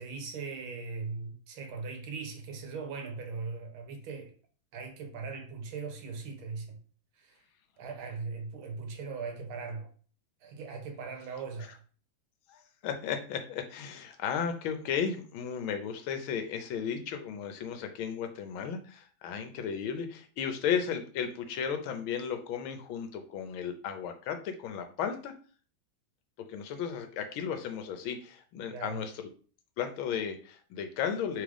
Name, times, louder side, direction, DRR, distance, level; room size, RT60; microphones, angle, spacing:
voice 1, 0.0-4.3 4.7-6.8 7.2-7.4 7.8-9.9 10.4-11.8 28.7-29.0, right 4 dB, 85° right, 1.7 m, -39 dB
voice 2, 12.5-25.3 26.5-29.1 29.8-31.4, left 7 dB, 90° left, 1.5 m, -34 dB
3.9 x 3.6 x 3.3 m
omnidirectional pair, 2.2 m